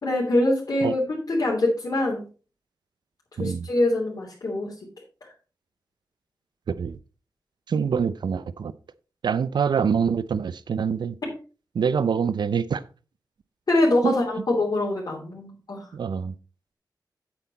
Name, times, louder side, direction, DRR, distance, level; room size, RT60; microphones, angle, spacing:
voice 1, 0.0-2.2 3.4-4.7 5.2-5.3 11.2-11.3 13.7-15.9, left 1 dB, 60° left, -5 dB, 2.8 m, -24 dB
voice 2, 7.7-8.7 9.2-11.1 11.7-12.8 14.0-14.1 15.9-16.3, right 6 dB, 85° right, 15 dB, 0.6 m, -25 dB
8.1 x 8.0 x 4.1 m, 0.36 s
wide cardioid pair, 120°, 7 cm